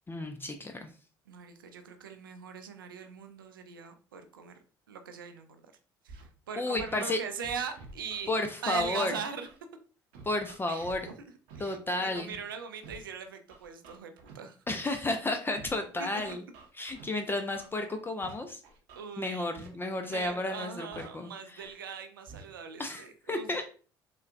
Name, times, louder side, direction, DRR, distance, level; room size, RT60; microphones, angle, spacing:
voice 1, 0.1-0.9 6.6-7.2 8.3-9.1 10.2-11.1 11.6-12.3 14.7-16.4 16.8-18.6 19.2-20.9 21.1-21.7 22.8-23.7, left 2 dB, 20° left, 5 dB, 0.4 m, -32 dB
voice 2, 1.3-4.6 4.9-5.6 6.0-8.3 8.6-9.5 10.7-11.2 11.6-14.6 16.0-16.1 19.0-19.7 20.0-23.5, right 6 dB, 90° right, 8 dB, 0.4 m, -40 dB
Scratching (performance technique), 6.1-6.2 6.8-6.9 7.4-8.2 8.8-8.9 9.4-9.6 10.1-11.0 11.5-11.6 12.1-12.4 12.8-13.0 13.5-14.3 14.8-15.0 15.5-15.7 16.2-17.0 17.5-17.7 18.2-18.3 18.6-19.0 19.5-19.7 20.1-20.3 20.9-21.0 21.6-21.7 22.3-22.4, right 3 dB, 75° right, 0.7 m, -49 dB
3.7 x 2.1 x 2.4 m, 0.38 s
hypercardioid pair, 55°, 11 cm